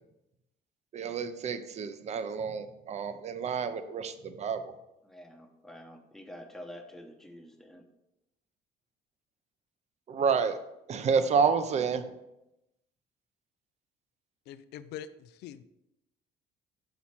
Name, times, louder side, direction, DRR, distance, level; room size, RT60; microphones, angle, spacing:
voice 1, 0.9-4.7 10.1-10.6 10.9-12.0, right 6 dB, 40° right, 11 dB, 0.6 m, -29 dB
voice 2, 5.0-7.9, equal, ahead, 3 dB, 0.8 m, -48 dB
voice 3, 14.5-15.6, left 10 dB, 80° left, 14 dB, 0.4 m, -44 dB
6.0 x 4.2 x 4.3 m, 0.90 s
cardioid pair, 110°, 17 cm